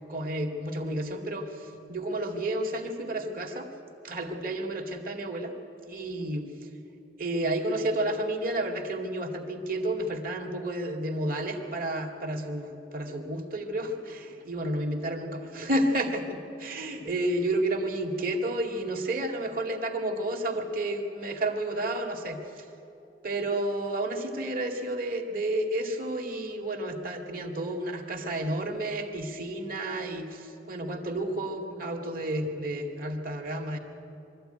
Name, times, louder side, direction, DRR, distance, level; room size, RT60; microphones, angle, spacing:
voice 1, 0.1-3.7 4.0-5.5 5.8-6.4 7.2-22.6 23.2-33.8, right 1 dB, 50° right, 3 dB, 2.1 m, -31 dB
23.5 x 13.5 x 9.1 m, 2.9 s
head